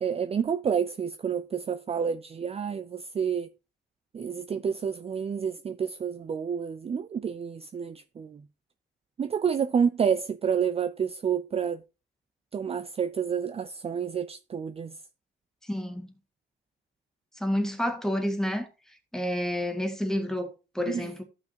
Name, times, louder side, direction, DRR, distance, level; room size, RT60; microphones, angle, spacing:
voice 1, 0.0-3.5 4.1-8.4 9.2-11.8 12.5-15.0 20.9-21.1, right 7 dB, 30° right, 0.4 m, -29 dB
voice 2, 15.6-16.1 17.4-18.7 19.1-21.2, equal, 5° left, 1.8 m, -29 dB
14.0 x 5.9 x 2.9 m
cardioid pair, 90°, 20 cm